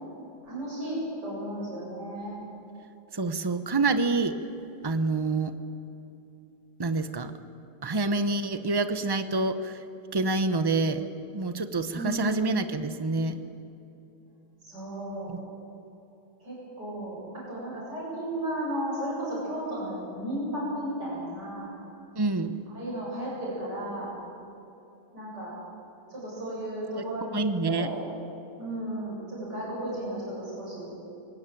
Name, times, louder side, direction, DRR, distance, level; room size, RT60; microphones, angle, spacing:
voice 1, 0.4-2.4 11.9-12.6 14.6-15.3 16.4-21.7 22.7-24.1 25.1-25.5 26.1-27.4 27.6-28.0 28.6-30.9, right 1 dB, 55° right, -6 dB, 8.6 m, -34 dB
voice 2, 3.1-4.3 4.8-5.5 6.8-7.3 7.8-9.8 10.1-11.1 11.3-13.4 15.3-15.4 22.1-22.6 27.3-27.9, right 3 dB, 35° right, 10 dB, 0.4 m, -27 dB
22.5 x 19.0 x 9.2 m, 2.8 s
omnidirectional pair, 2.2 m